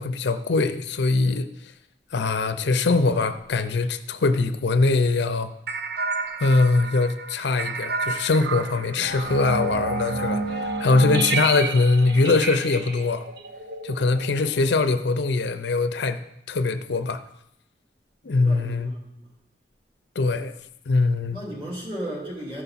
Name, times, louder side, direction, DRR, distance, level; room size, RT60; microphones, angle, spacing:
voice 1, 0.0-1.5 2.1-5.5 6.4-13.2 13.8-16.2 16.5-17.2 18.2-18.9 20.2-20.5 20.9-21.4, left 3 dB, 65° left, 11 dB, 0.5 m, -22 dB
voice 2, 2.9-3.3 14.2-14.6 18.2-19.3 21.3-22.6, equal, 30° right, -3 dB, 2.9 m, -36 dB
sound 1, 5.7-14.6, right 3 dB, 60° right, 0.7 m, -30 dB
14.0 x 5.7 x 4.1 m, 0.79 s
head